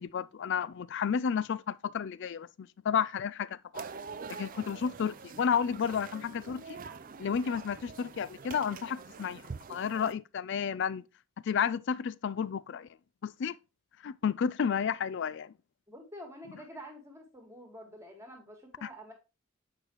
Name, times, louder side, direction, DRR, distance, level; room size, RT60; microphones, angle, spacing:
voice 1, 0.0-3.8 4.3-6.8 7.2-9.4 9.7-11.0 11.4-12.9 13.2-13.6 14.0-15.5 18.8-18.9, left 7 dB, 50° left, 0.3 m, -32 dB
sound 1, 3.7-10.1, right 5 dB, 40° right, 0.4 m, -45 dB
voice 2, 15.9-19.1, equal, 10° right, 1.8 m, -48 dB
8.2 x 5.0 x 3.0 m
head